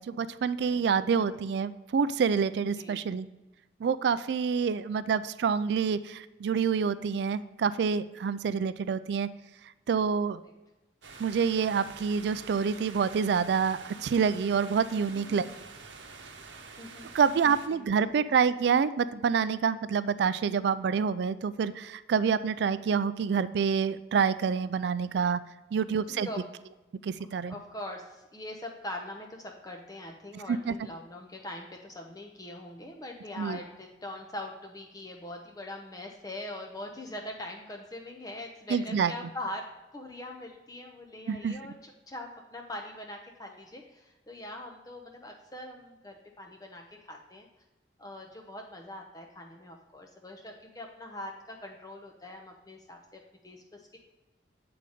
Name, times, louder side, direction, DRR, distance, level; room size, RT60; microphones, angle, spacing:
voice 1, 0.0-3.3 3.8-9.3 9.9-10.4 11.2-15.5 17.1-25.4 25.7-26.3 27.0-27.5 30.5-30.7 33.4-33.6 38.7-39.1 41.3-41.6, right 6 dB, 65° right, 15 dB, 0.3 m, -27 dB
sound 1, 11.0-17.7, right 4 dB, 80° right, 0.8 m, -47 dB
voice 2, 15.1-15.5 16.8-17.1 17.7-17.9 26.0-26.4 27.5-39.6 39.9-47.5 48.0-54.0, left 1 dB, 20° left, 1 dB, 0.6 m, -42 dB
8.3 x 3.9 x 4.9 m, 1.1 s
head